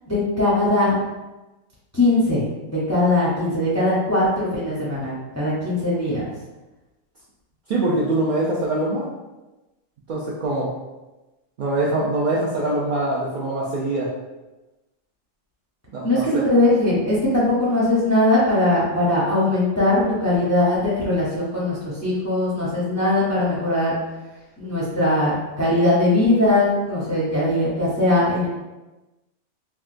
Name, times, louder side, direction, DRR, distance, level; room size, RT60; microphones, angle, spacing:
voice 1, 0.1-1.0 1.9-6.3 16.0-23.9 24.6-28.5, left 1 dB, 20° left, -8 dB, 0.5 m, -20 dB
voice 2, 7.7-9.1 10.1-10.7 11.6-14.1 15.9-16.5, right 2 dB, 70° right, -6 dB, 0.4 m, -23 dB
3.6 x 2.2 x 2.5 m, 1.1 s
omnidirectional pair, 1.3 m